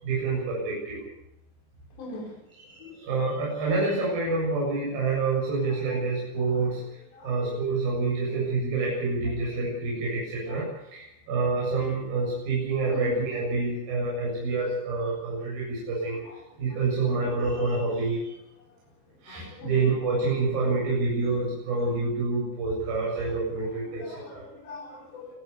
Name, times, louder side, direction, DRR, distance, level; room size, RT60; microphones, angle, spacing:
voice 1, 0.0-1.0 2.7-16.2 16.6-18.3 19.2-24.4, right 3 dB, 55° right, -5 dB, 9.3 m, -27 dB
voice 2, 2.0-2.4 2.8-3.3 5.9-6.0 6.4-7.7 10.5-10.7 12.9-13.2 16.2-16.4 17.2-17.7 19.3-19.9 23.9-25.3, left 2 dB, 75° left, -1 dB, 7.1 m, -43 dB
25.5 x 14.5 x 8.3 m, 0.81 s
omnidirectional pair, 5.0 m